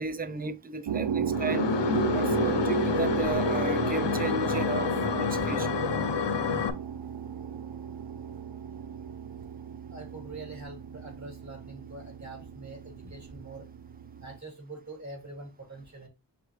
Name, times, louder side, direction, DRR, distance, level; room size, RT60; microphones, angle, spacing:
voice 1, 0.0-1.6 2.1-5.7, right 4 dB, 20° right, 0.5 m, -34 dB
sound 1, 0.9-14.4, right 8 dB, 85° right, 0.5 m, -34 dB
sound 2, 1.3-6.7, left 7 dB, 80° left, 0.7 m, -28 dB
voice 2, 9.9-13.7 14.2-16.1, right 2 dB, 40° right, 2.6 m, -44 dB
5.9 x 3.1 x 2.2 m
wide cardioid pair, 55°, 42 cm